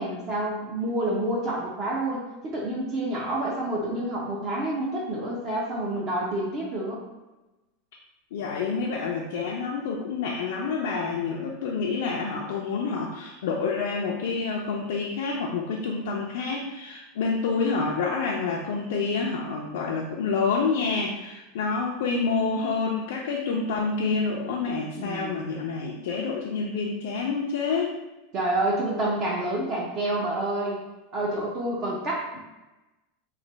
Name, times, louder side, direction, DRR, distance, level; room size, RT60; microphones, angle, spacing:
voice 1, 0.0-7.1 25.0-25.4 28.3-30.8 31.1-32.4, right 1 dB, 25° right, -3 dB, 0.5 m, -28 dB
voice 2, 8.3-27.9, left 4 dB, 70° left, -2 dB, 0.4 m, -28 dB
3.1 x 2.2 x 3.9 m, 1.1 s
supercardioid pair, 175°, 0 cm